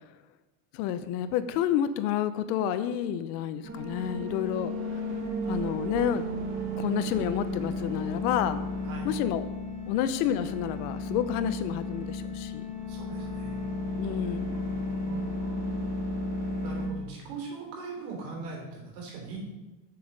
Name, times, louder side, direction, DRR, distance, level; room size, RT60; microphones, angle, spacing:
voice 1, 0.7-5.0 5.5-6.3 6.8-8.6 9.0-9.5 9.9-12.7 14.0-14.6, left 10 dB, 70° left, 12 dB, 0.8 m, -29 dB
sound 1, 3.6-16.9, left 1 dB, 65° right, 2.3 m, -33 dB
voice 2, 12.9-13.6 14.5-19.4, right 4 dB, 80° right, 0 dB, 3.4 m, -42 dB
7.4 x 6.8 x 5.2 m, 1.1 s
cardioid pair, 170°, 48 cm